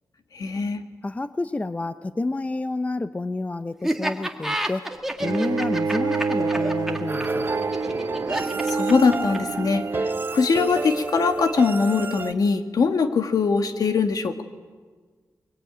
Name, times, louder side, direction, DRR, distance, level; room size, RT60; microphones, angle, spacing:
voice 1, 0.3-0.8 8.6-14.4, left 5 dB, 75° left, 7 dB, 1.8 m, -22 dB
voice 2, 1.0-4.9 5.2-7.5, left 2 dB, 20° left, 12 dB, 0.6 m, -29 dB
Laughter, 3.8-9.6, right 1 dB, 5° right, 1.9 m, -29 dB
Bowed string instrument, 5.2-10.2, right 4 dB, 70° right, 1.8 m, -27 dB
sound 1, 7.1-12.3, right 3 dB, 30° right, 0.9 m, -30 dB
23.0 x 23.0 x 9.0 m, 1.5 s
wide cardioid pair, 115°, 6 cm